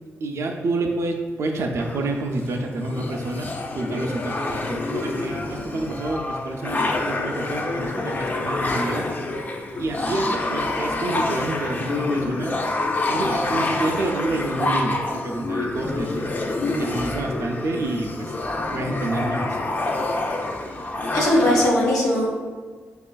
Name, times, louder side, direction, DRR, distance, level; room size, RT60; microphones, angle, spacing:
voice 1, 0.2-9.1 9.8-12.6 13.1-16.3 16.8-18.3 18.7-19.6, right 2 dB, 65° right, 2 dB, 0.3 m, -28 dB
sound 1, 1.8-21.7, left 2 dB, 35° left, 0.4 m, -27 dB
voice 2, 21.1-22.5, left 1 dB, 90° left, -6 dB, 0.8 m, -19 dB
4.9 x 2.4 x 2.2 m, 1.5 s
cardioid pair, 60°, 5 cm